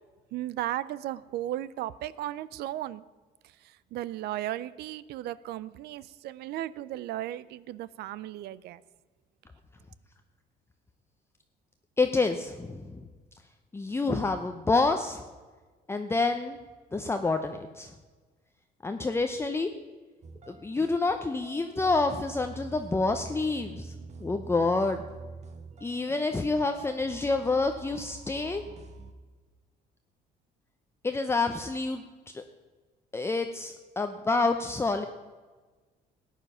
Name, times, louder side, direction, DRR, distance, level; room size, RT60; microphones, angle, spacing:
voice 1, 0.3-3.0 3.6-8.8, right 13 dB, 75° right, 18 dB, 0.5 m, -35 dB
voice 2, 12.0-13.0 13.7-15.2 15.9-16.6 16.9-17.9 18.8-19.7 20.5-23.9 24.2-25.0 25.8-28.6 31.0-32.4 33.1-35.0, left 3 dB, 15° left, 6 dB, 0.7 m, -28 dB
sound 1, 20.2-29.1, right 4 dB, 40° right, 1.3 m, -46 dB
14.0 x 9.2 x 5.6 m, 1.4 s
cardioid pair, 110°, 17 cm